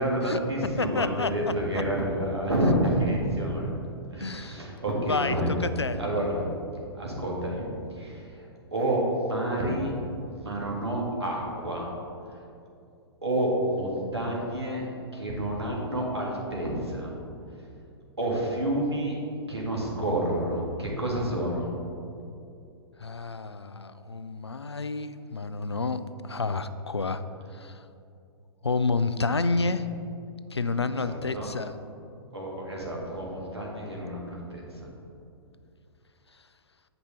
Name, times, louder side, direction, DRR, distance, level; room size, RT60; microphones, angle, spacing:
voice 1, 0.0-3.7 4.1-5.6 5.9-6.4 6.9-7.6 8.0-8.2 8.7-10.0 10.4-11.9 13.2-14.8 15.1-17.1 18.2-19.1 19.5-21.7 31.0-31.5 32.3-34.9, right 1 dB, 85° right, -2 dB, 1.9 m, -29 dB
voice 2, 0.8-1.8 4.2-4.6 5.1-6.0 23.0-27.2 27.5-27.8 28.6-29.9 30.5-31.7, left 3 dB, 90° left, 12 dB, 0.4 m, -29 dB
8.6 x 5.3 x 4.4 m, 2.6 s
figure-of-eight pair, 110°, 13 cm